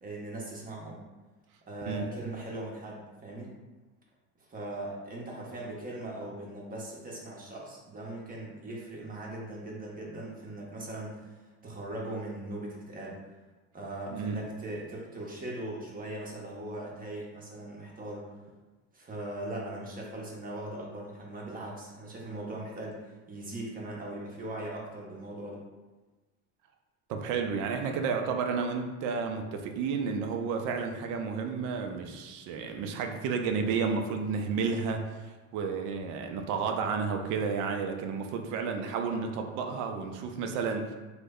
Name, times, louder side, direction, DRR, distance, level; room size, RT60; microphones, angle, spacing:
voice 1, 0.0-1.0 1.7-3.5 4.5-11.3 11.6-13.2 13.7-18.3 18.9-25.6, right 1 dB, 20° right, -3 dB, 0.8 m, -39 dB
voice 2, 14.1-14.5 27.1-41.0, right 5 dB, 50° right, 4 dB, 0.5 m, -31 dB
3.1 x 2.1 x 3.5 m, 1.2 s
supercardioid pair, 110°, 39 cm